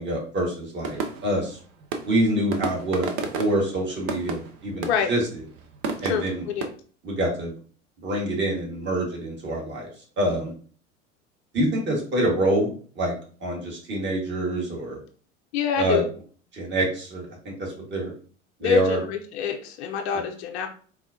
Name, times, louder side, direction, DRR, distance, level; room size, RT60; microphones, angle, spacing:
voice 1, 0.0-1.6 2.0-3.1 3.4-5.2 6.0-6.4 7.0-7.5 8.0-9.9 10.2-10.5 11.5-15.0 15.8-16.0 16.5-18.1 18.6-19.0, right 1 dB, 30° right, -2 dB, 1.6 m, -26 dB
sound 1, 0.8-6.7, right 4 dB, 50° right, 0.7 m, -33 dB
voice 2, 6.0-6.7 15.5-16.1 18.6-20.7, left 7 dB, 55° left, 4 dB, 0.6 m, -26 dB
4.2 x 2.3 x 2.6 m, 0.42 s
hypercardioid pair, 85°, 38 cm